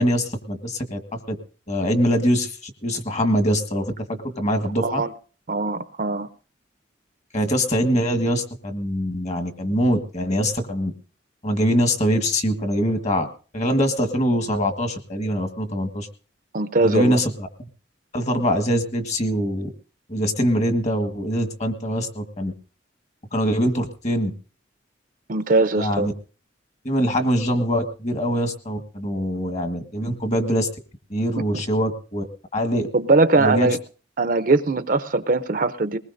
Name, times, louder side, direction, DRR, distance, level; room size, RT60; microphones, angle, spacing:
voice 1, 0.0-1.3 1.7-5.0 7.3-10.9 11.4-13.3 13.5-16.1 16.8-17.7 18.1-19.7 20.1-22.5 23.3-24.3 25.8-26.1 26.8-30.7 31.1-32.2 32.5-32.9 33.4-33.8, equal, 35° left, 7 dB, 1.5 m, -23 dB
voice 2, 4.8-5.1 5.5-6.3 16.5-17.2 25.3-26.1 31.4-31.6 32.9-33.8 34.2-36.0, right 3 dB, 45° right, 11 dB, 0.6 m, -21 dB
21.0 x 19.5 x 2.6 m, 0.38 s
head